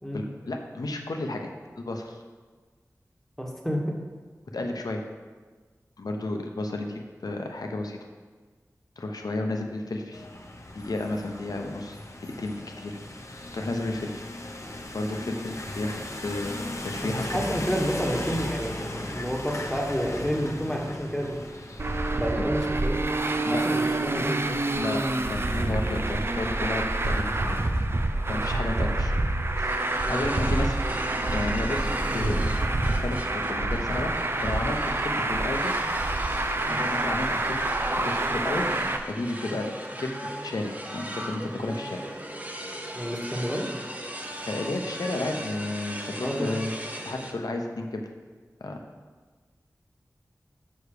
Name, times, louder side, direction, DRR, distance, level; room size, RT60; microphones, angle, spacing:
voice 1, 0.1-1.5 1.8-2.2 4.5-5.0 6.0-8.0 9.0-10.2 10.7-12.0 12.2-14.2 14.9-17.4 22.3-22.5 23.5-24.0 24.8-27.6 28.3-29.1 29.6-30.7 31.2-31.9 32.1-32.4 32.9-34.1 34.4-35.7 36.7-39.7 40.0-42.1 44.5-46.7 47.0-48.1 48.6-48.8, left 2 dB, 85° left, 3 dB, 0.9 m, -32 dB
voice 2, 3.4-3.9 17.0-21.4 22.1-23.0 23.5-24.6 30.0-30.3 42.9-43.7 46.2-46.5, equal, 5° left, -1 dB, 1.5 m, -29 dB
sound 1, 10.1-22.3, left 1 dB, 50° left, 0.8 m, -37 dB
Traffic noise roadway noise, 21.8-39.0, right 2 dB, 40° right, 0.5 m, -27 dB
sound 2, 29.7-47.3, equal, 25° right, 0.9 m, -38 dB
6.3 x 4.9 x 6.7 m, 1.4 s
wide cardioid pair, 55°, 6 cm